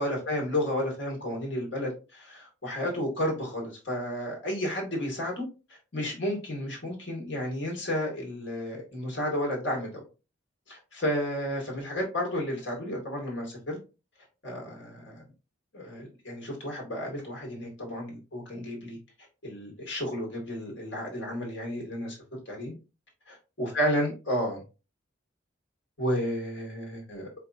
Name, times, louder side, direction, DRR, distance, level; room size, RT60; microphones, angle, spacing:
voice 1, 0.0-5.5 5.9-10.0 10.7-13.8 14.4-15.2 15.7-19.0 19.4-22.2 22.5-22.7 23.6-24.6 26.0-27.3, equal, 65° left, -1 dB, 2.1 m, -32 dB
4.7 x 3.4 x 2.7 m, 0.31 s
head